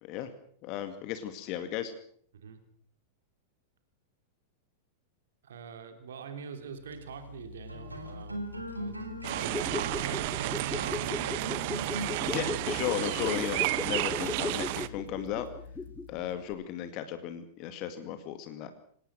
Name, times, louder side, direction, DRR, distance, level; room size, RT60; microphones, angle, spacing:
voice 1, 0.6-1.9 12.2-15.5 16.1-18.7, left 10 dB, 40° left, 9 dB, 2.0 m, -35 dB
voice 2, 5.4-8.4 8.7-11.8, right 6 dB, 65° right, 7 dB, 3.3 m, -45 dB
sound 1, 6.7-16.3, left 1 dB, 85° right, 3.8 m, -42 dB
sound 2, 9.2-14.9, right 18 dB, 45° right, 1.0 m, -32 dB
sound 3, 9.4-16.2 16.5-16.6, left 4 dB, 10° left, 1.5 m, -37 dB
26.0 x 18.5 x 6.4 m, 0.62 s
figure-of-eight pair, 95°, 0 cm